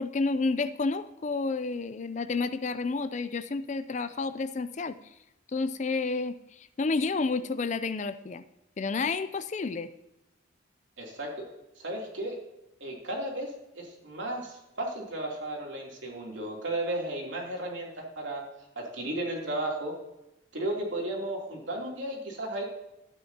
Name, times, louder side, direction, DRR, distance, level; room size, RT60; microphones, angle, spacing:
voice 1, 0.0-5.0 5.5-8.4 8.8-9.9, left 3 dB, 35° left, 13 dB, 0.4 m, -30 dB
voice 2, 11.0-11.4 11.8-12.4 12.8-18.4 18.7-19.9 20.5-22.6, right 1 dB, 70° right, -2 dB, 3.0 m, -34 dB
13.0 x 9.2 x 2.8 m, 0.94 s
head